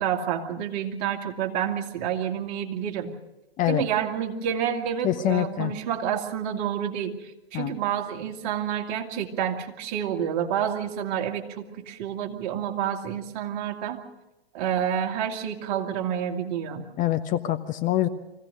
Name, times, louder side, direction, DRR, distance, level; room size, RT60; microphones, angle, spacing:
voice 1, 0.0-3.1 3.7-14.0 14.5-16.8, right 9 dB, 45° right, 3 dB, 2.3 m, -29 dB
voice 2, 5.0-5.7 7.5-7.8 17.0-18.1, left 13 dB, 25° left, 9 dB, 0.8 m, -25 dB
24.5 x 16.5 x 6.5 m, 1.0 s
hypercardioid pair, 110°, 32 cm